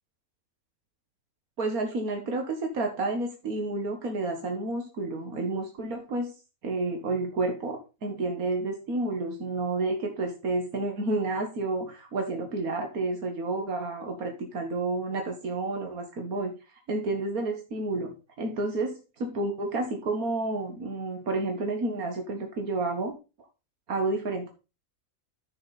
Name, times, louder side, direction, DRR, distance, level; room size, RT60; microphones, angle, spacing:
voice 1, 1.6-6.3 6.6-16.6 16.9-23.1 23.9-24.5, right 2 dB, 85° right, 3 dB, 2.0 m, -30 dB
10.5 x 7.7 x 4.1 m, 0.29 s
omnidirectional pair, 1.5 m